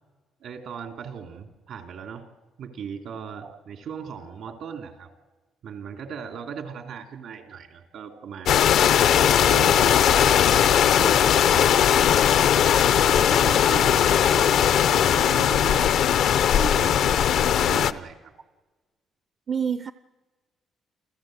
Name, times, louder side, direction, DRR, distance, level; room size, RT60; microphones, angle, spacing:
voice 1, 0.4-2.3 2.6-5.1 5.6-8.9 9.2-10.5 10.9-12.6 13.0-15.9 16.5-18.3, right 7 dB, 75° right, 3.1 m, -38 dB
sound 1, 8.5-17.9, left 9 dB, 75° left, 0.7 m, -19 dB
voice 2, 19.5-19.9, right 7 dB, 45° right, 0.6 m, -29 dB
29.0 x 15.0 x 7.9 m
cardioid pair, 90°, 0 cm